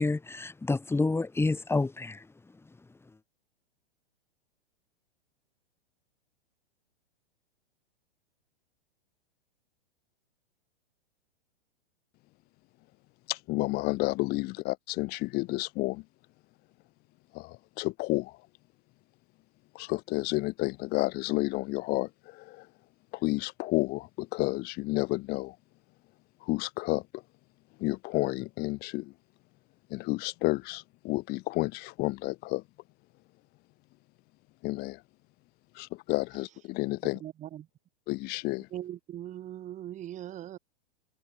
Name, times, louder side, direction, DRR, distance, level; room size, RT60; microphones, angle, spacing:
voice 1, 0.0-3.2, left 3 dB, 5° left, 4.1 m, -30 dB
voice 2, 13.3-16.0 17.3-18.5 19.7-22.7 23.1-25.6 26.4-27.2 27.8-29.1 29.9-32.6 34.6-35.0 35.7-37.2 38.1-38.7, left 21 dB, 30° left, 0.8 m, -31 dB
voice 3, 37.2-37.7 38.7-40.6, right 12 dB, 25° right, 1.3 m, -40 dB
hypercardioid pair, 125°, 32 cm